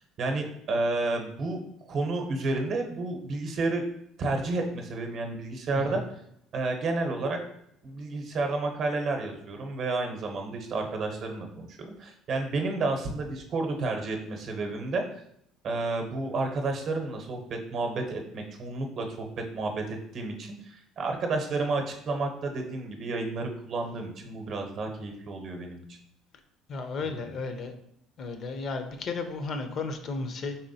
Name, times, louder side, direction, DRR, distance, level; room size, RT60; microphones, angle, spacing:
voice 1, 0.0-1.6 1.9-3.8 4.2-6.0 6.5-7.4 7.8-15.0 15.6-25.8 27.0-27.1, right 3 dB, 50° right, 4 dB, 0.7 m, -31 dB
voice 2, 26.7-27.7 28.2-30.6, left 3 dB, 45° left, 7 dB, 0.5 m, -34 dB
4.2 x 3.4 x 2.7 m, 0.73 s
cardioid pair, 115°, 0 cm